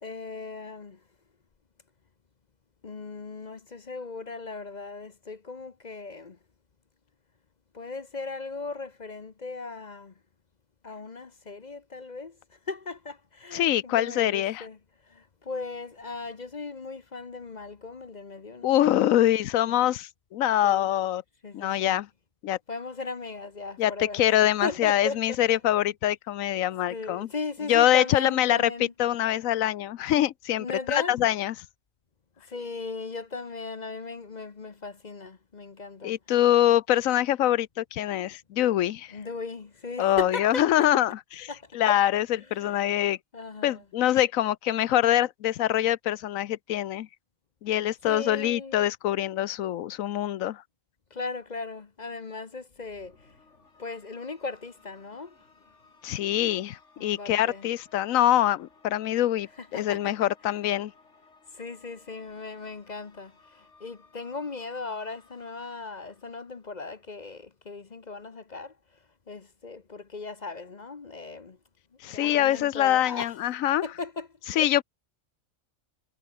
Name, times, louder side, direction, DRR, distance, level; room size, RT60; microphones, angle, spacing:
voice 1, 0.0-1.0 2.8-6.4 7.7-10.1 10.8-12.4 12.7-14.8 15.1-19.3 19.7-19.9 20.6-20.9 21.4-22.0 22.7-24.4 24.6-25.6 26.9-28.9 30.6-31.2 32.5-36.1 39.1-40.9 41.5-42.0 42.4-42.9 43.3-43.8 48.0-48.8 51.1-53.2 53.8-55.3 57.0-57.7 59.6-60.3 61.5-68.7 69.3-71.6 72.1-73.3 73.8-74.3 74.6-74.7, left 4 dB, 35° left, 1.0 m, -37 dB
voice 2, 13.5-14.6 18.6-21.2 21.5-22.1 22.4-22.6 23.8-27.3 27.7-28.7 29.0-31.5 36.0-39.1 40.0-42.3 42.5-43.2 43.6-47.1 47.6-50.6 56.0-60.9 72.0-73.8 74.6-74.8, left 12 dB, 85° left, 1.1 m, -24 dB
sound 1, 52.7-67.1, left 3 dB, 60° left, 3.0 m, -60 dB
omnidirectional pair, 1.4 m